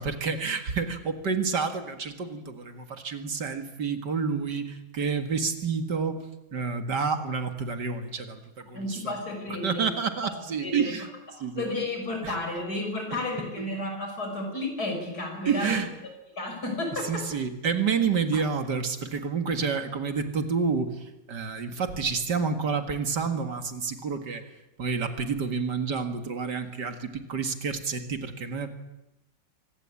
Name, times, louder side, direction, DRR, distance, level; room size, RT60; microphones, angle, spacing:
voice 1, 0.0-6.2 6.5-9.1 9.5-11.1 11.4-11.7 12.2-12.3 13.1-13.2 13.6-13.7 15.5-15.9 17.1-24.4 24.8-28.7, right 5 dB, 65° right, 7 dB, 2.4 m, -29 dB
voice 2, 8.7-9.8 10.6-10.9 11.4-15.8 16.4-17.2 18.3-18.4, left 2 dB, 55° left, 3 dB, 6.6 m, -32 dB
25.0 x 18.5 x 8.6 m, 0.92 s
omnidirectional pair, 2.0 m